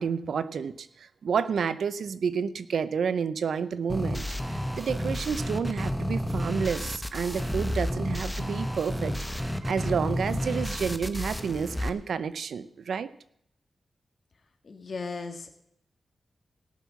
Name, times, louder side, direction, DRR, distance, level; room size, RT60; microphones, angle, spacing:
voice 1, 0.0-4.2 4.5-13.1, right 6 dB, 85° right, 14 dB, 0.7 m, -30 dB
sound 1, 3.9-11.9, equal, ahead, 1.0 m, -31 dB
voice 2, 14.6-15.5, left 4 dB, 55° left, 6 dB, 1.8 m, -36 dB
18.0 x 6.4 x 7.2 m, 0.71 s
wide cardioid pair, 110°, 0 cm